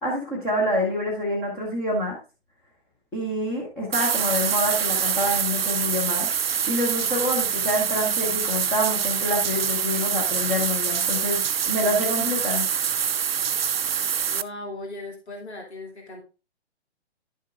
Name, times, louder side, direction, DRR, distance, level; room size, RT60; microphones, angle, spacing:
voice 1, 0.0-2.2 3.1-6.3 6.7-12.7, left 1 dB, 5° left, -5 dB, 0.7 m, -27 dB
sound 1, 3.9-14.4, right 8 dB, 60° right, 0.5 m, -25 dB
voice 2, 14.3-16.2, left 2 dB, 70° left, 0 dB, 2.6 m, -37 dB
11.0 x 6.4 x 2.4 m, 0.32 s
figure-of-eight pair, 135°, 34 cm